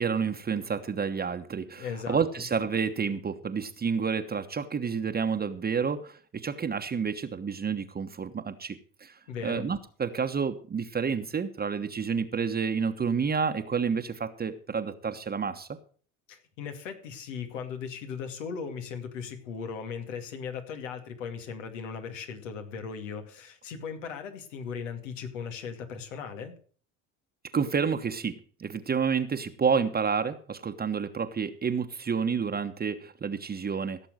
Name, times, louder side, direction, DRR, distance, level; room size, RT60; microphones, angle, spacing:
voice 1, 0.0-15.8 27.5-34.1, right 6 dB, 25° right, 6 dB, 1.2 m, -29 dB
voice 2, 1.8-2.2 9.3-9.7 16.3-26.5, left 6 dB, 80° left, 6 dB, 2.4 m, -38 dB
16.5 x 6.9 x 6.4 m, 0.42 s
hypercardioid pair, 75°, 37 cm